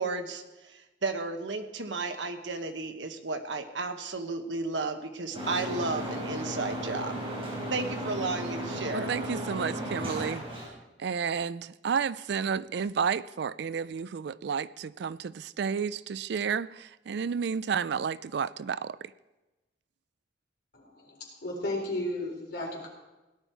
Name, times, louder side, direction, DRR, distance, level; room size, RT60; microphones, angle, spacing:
voice 1, 0.0-7.2 7.7-9.1, right 3 dB, 90° right, 1.2 m, -33 dB
sound 1, 5.3-10.7, equal, 30° right, 4.7 m, -35 dB
voice 2, 8.9-10.4 11.0-19.1, right 6 dB, 65° right, 0.4 m, -31 dB
voice 3, 20.7-22.9, left 1 dB, 60° left, 4.2 m, -34 dB
17.5 x 11.0 x 4.6 m
head